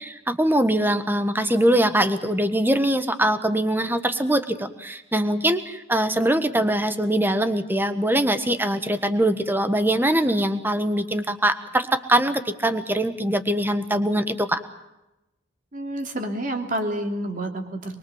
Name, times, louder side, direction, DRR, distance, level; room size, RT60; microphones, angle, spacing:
voice 1, 0.0-14.6, right 1 dB, 10° right, 9 dB, 1.4 m, -22 dB
voice 2, 15.7-18.0, right 1 dB, 40° right, 4 dB, 3.2 m, -29 dB
25.0 x 23.0 x 7.3 m, 0.94 s
head